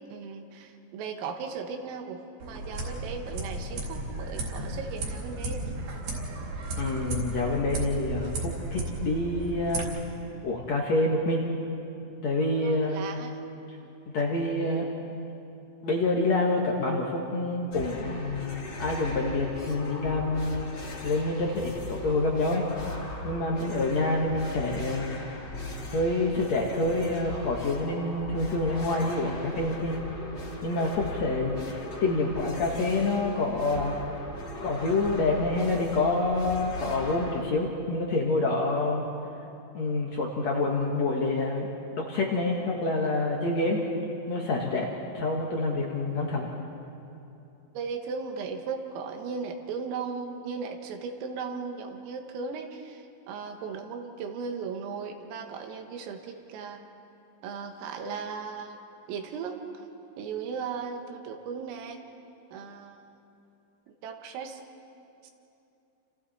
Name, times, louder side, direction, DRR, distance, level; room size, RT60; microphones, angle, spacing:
voice 1, 0.1-5.7 12.6-13.4 23.6-23.8 47.8-56.8 57.4-58.8 59.1-59.9 60.2-62.0 62.5-63.1 63.9-64.6 65.2-65.3, right 5 dB, 85° right, 4 dB, 4.2 m, -37 dB
sound 1, 2.4-9.8, right 2 dB, 50° right, 4.9 m, -34 dB
voice 2, 6.8-9.9 10.4-11.4 12.2-13.0 14.1-14.9 15.8-20.7 21.0-22.6 23.2-25.2 25.9-30.0 30.6-34.0 34.6-39.0 39.7-41.7 42.0-43.8 44.3-44.9 45.1-46.5, left 2 dB, 70° left, -1 dB, 1.6 m, -27 dB
sound 2, 17.7-37.4, left 1 dB, 30° left, 3.0 m, -39 dB
29.5 x 28.5 x 4.3 m, 2.8 s
omnidirectional pair, 5.8 m